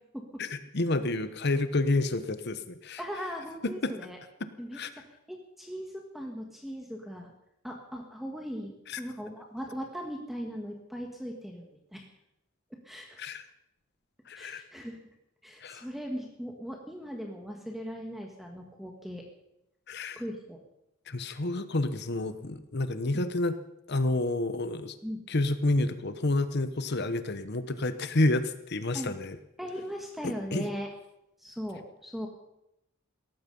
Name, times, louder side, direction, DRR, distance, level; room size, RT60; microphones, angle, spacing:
voice 1, 0.4-3.0 3.8-3.9 4.7-4.9 8.9-9.0 13.2-13.4 14.3-14.6 15.6-15.8 19.9-20.2 21.1-23.6 23.9-24.9 25.3-29.4 30.2-30.7, left 2 dB, 55° left, 11 dB, 1.1 m, -29 dB
voice 2, 3.0-4.2 4.6-5.0 5.3-7.3 7.6-12.0 12.8-13.2 14.3-15.0 15.4-19.2 20.2-20.6 23.1-23.2 25.0-25.2 28.9-29.1 29.6-30.9 31.4-32.3, equal, ahead, 1 dB, 1.8 m, -39 dB
18.0 x 14.5 x 5.5 m, 0.86 s
head